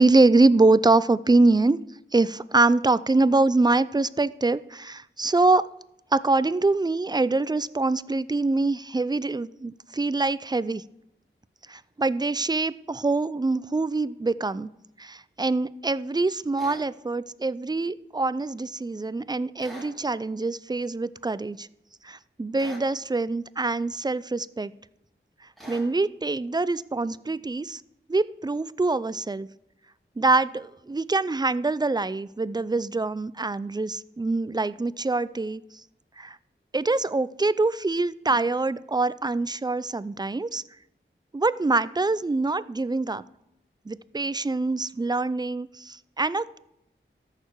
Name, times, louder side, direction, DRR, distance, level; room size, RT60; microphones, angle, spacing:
voice 1, 0.0-1.8 2.1-5.7 6.1-10.8 11.7-14.7 15.0-21.7 22.0-24.7 25.7-27.8 28.1-29.5 30.2-35.6 36.2-36.4 36.7-40.6 41.3-43.2 43.9-46.6, right 3 dB, 20° right, 17 dB, 0.4 m, -24 dB
sound 1, 16.6-16.8 19.6-19.9 22.5-22.9 25.6-25.9, equal, ahead, 3.8 m, -42 dB
13.5 x 6.7 x 4.6 m, 0.82 s
wide cardioid pair, 55°, 21 cm